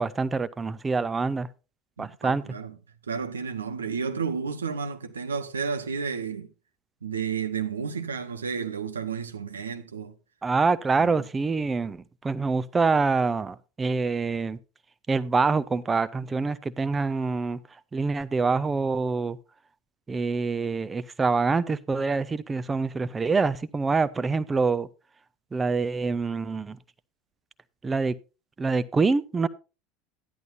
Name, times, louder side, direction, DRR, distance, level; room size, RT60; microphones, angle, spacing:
voice 1, 0.0-1.5 2.0-2.4 10.4-14.6 15.1-17.6 17.9-19.4 20.1-24.9 25.5-26.8 27.8-28.1 28.6-29.5, right 4 dB, 20° right, 0.7 m, -25 dB
voice 2, 2.0-2.8 3.1-6.5 7.0-10.1 11.0-11.3, right 6 dB, 80° right, 1.0 m, -32 dB
13.0 x 10.5 x 2.6 m
figure-of-eight pair, 75°, 0 cm